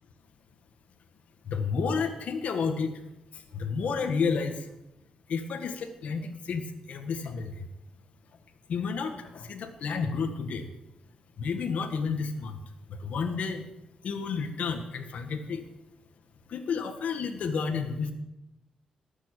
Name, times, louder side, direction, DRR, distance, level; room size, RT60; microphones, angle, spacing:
voice 1, 1.4-3.0 3.3-4.7 5.3-7.7 8.7-10.7 11.4-12.6 12.9-13.7 14.0-15.6 16.5-18.1, left 5 dB, 70° left, 5 dB, 1.7 m, -31 dB
19.0 x 7.5 x 9.0 m, 0.91 s
wide cardioid pair, 155°, 2 cm